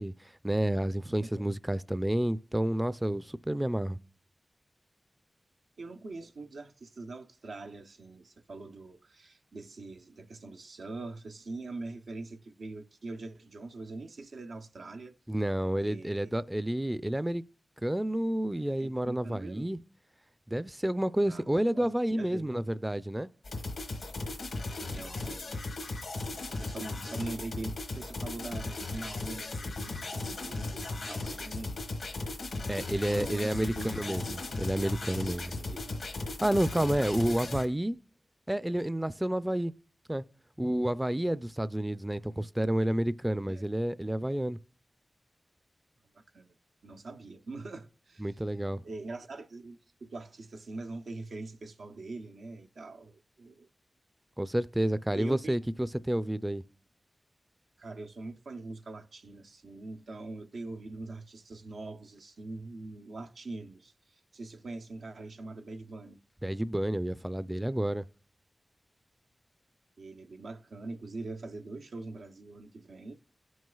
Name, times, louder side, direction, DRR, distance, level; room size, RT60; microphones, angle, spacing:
voice 1, 0.0-4.0 15.3-17.4 17.8-19.8 20.5-23.3 32.7-35.6 36.4-38.0 38.5-39.7 40.1-40.2 40.6-44.6 48.2-48.8 54.4-56.6 66.4-68.0, right 1 dB, 15° right, 0.3 m, -30 dB
voice 2, 5.8-15.1 15.8-16.3 18.8-19.8 21.3-22.6 24.8-25.5 26.6-31.8 33.0-34.4 35.5-36.1 36.9-37.1 43.5-43.6 46.3-46.5 46.8-48.4 48.8-53.7 55.1-55.6 57.8-66.2 70.0-73.1, right 2 dB, 85° right, 0.6 m, -43 dB
sound 1, 23.4-37.7, left 2 dB, 90° left, 1.3 m, -37 dB
17.0 x 6.2 x 2.3 m
cardioid pair, 40°, 0 cm